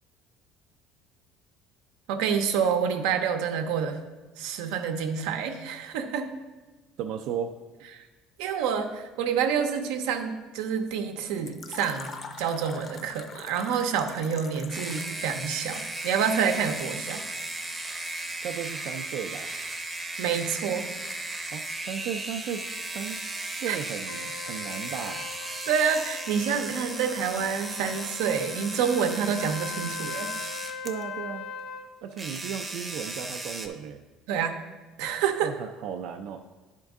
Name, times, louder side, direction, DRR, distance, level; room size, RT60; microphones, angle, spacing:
voice 1, 2.1-4.0 4.4-6.3 7.9-8.0 8.4-17.2 20.2-20.9 23.6-23.8 25.7-30.3 34.3-34.6 35.0-35.5, right 7 dB, 90° right, 6 dB, 0.7 m, -28 dB
voice 2, 7.0-7.5 18.4-19.5 21.5-25.3 30.8-31.4 32.0-34.0 35.4-36.4, right 8 dB, 65° right, 4 dB, 0.4 m, -35 dB
Fill (with liquid), 11.5-15.3, left 4 dB, 35° left, 0.6 m, -43 dB
sound 1, 14.7-31.0 32.1-33.7, right 2 dB, 10° right, 0.6 m, -36 dB
Trumpet, 24.1-31.9, left 6 dB, 65° left, 0.8 m, -40 dB
10.5 x 4.5 x 3.6 m, 1.2 s
cardioid pair, 145°, 0 cm